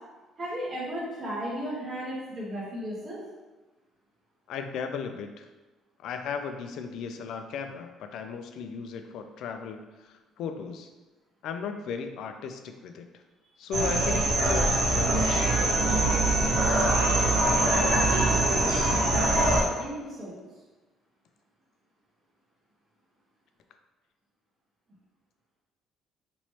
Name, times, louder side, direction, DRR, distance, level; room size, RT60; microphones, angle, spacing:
voice 1, 0.4-3.2 16.9-17.1 19.7-20.4, equal, 35° right, -6 dB, 1.1 m, -35 dB
voice 2, 4.5-5.5 6.0-10.9 11.4-13.1 13.6-19.0, left 6 dB, 70° left, 6 dB, 0.4 m, -37 dB
sound 1, 13.7-19.6, right 2 dB, 75° right, 1.1 m, -23 dB
4.2 x 3.0 x 3.0 m, 1.2 s
cardioid pair, 130°, 0 cm